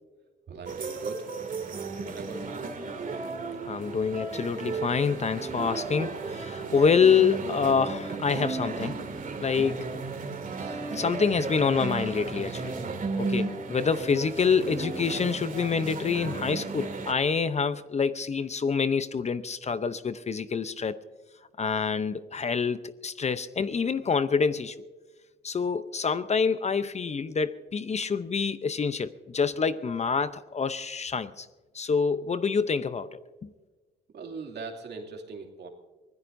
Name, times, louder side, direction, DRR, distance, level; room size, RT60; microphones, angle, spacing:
voice 1, 0.5-1.3 2.0-2.7 34.1-35.7, right 4 dB, 60° right, 2.7 m, -40 dB
sound 1, 0.7-17.1, right 4 dB, 40° right, 2.2 m, -34 dB
voice 2, 3.7-9.0 9.4-9.9 10.9-12.8 13.2-21.0 21.6-24.7 25.4-31.5 31.7-33.5, left 5 dB, 35° left, 0.7 m, -26 dB
24.5 x 17.0 x 2.6 m
cardioid pair, 90°, 20 cm